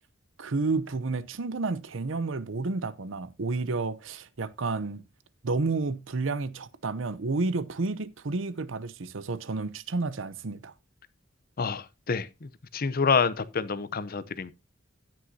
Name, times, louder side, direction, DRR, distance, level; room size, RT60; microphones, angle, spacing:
voice 1, 0.4-5.0 5.4-10.7, right 3 dB, 70° right, 0.7 m, -31 dB
voice 2, 11.6-14.5, left 5 dB, 50° left, 0.7 m, -28 dB
17.0 x 6.2 x 2.7 m
head